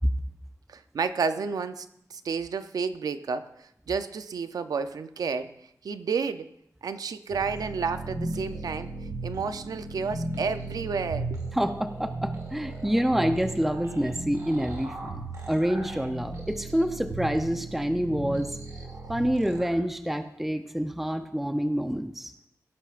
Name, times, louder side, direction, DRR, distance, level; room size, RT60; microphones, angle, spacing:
voice 1, 0.7-5.5 5.8-6.5 6.8-8.9 9.2-11.4, right 5 dB, 90° right, 11 dB, 0.6 m, -31 dB
sound 1, 7.3-19.8, right 2 dB, 70° right, 2.5 m, -36 dB
voice 2, 11.5-18.6 19.1-22.3, equal, 5° right, 7 dB, 0.6 m, -27 dB
17.5 x 10.0 x 2.5 m, 0.80 s
wide cardioid pair, 125°, 6 cm